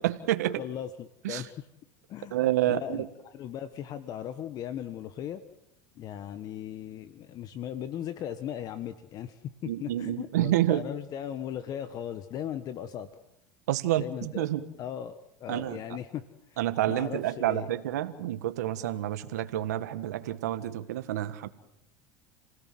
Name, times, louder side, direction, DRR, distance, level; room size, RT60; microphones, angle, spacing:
voice 1, 0.0-0.6 1.2-1.4 2.3-3.0 9.6-10.8 13.7-14.6 15.5-15.8 16.6-21.5, right 13 dB, 90° right, 10 dB, 1.6 m, -28 dB
voice 2, 0.6-1.7 2.1-5.4 6.0-13.1 14.0-14.5 14.8-15.1 15.4-16.2 16.5-17.7, left 10 dB, 45° left, 11 dB, 1.4 m, -38 dB
30.0 x 17.5 x 7.8 m, 0.83 s
supercardioid pair, 105°, 9 cm